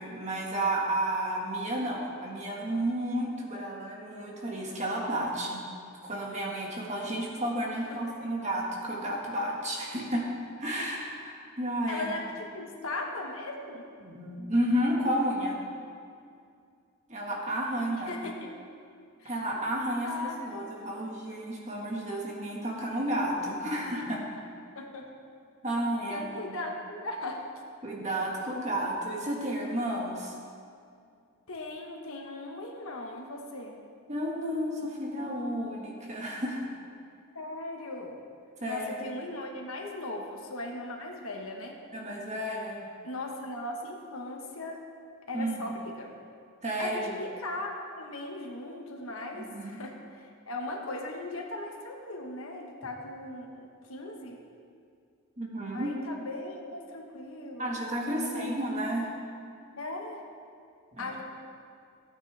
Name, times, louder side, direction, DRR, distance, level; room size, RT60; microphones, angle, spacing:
voice 1, 0.0-5.6 6.0-10.3 10.6-12.1 14.0-15.6 17.1-18.2 19.2-24.2 25.6-26.5 27.8-30.3 34.1-36.7 38.6-39.1 41.9-42.9 45.3-45.7 46.6-47.0 49.4-49.8 55.4-55.9 57.6-59.1 60.9-61.1, right 1 dB, 30° right, -2 dB, 1.8 m, -32 dB
voice 2, 11.9-13.8 18.1-18.5 19.2-19.4 20.0-21.2 24.7-25.1 26.1-27.4 31.5-33.8 37.3-38.2 38.7-41.8 43.0-44.8 45.3-46.1 46.8-54.4 55.7-57.7 58.1-58.5 59.8-60.2 61.0-61.2, left 2 dB, 75° left, 1 dB, 1.4 m, -38 dB
16.0 x 9.0 x 3.5 m, 2.3 s
head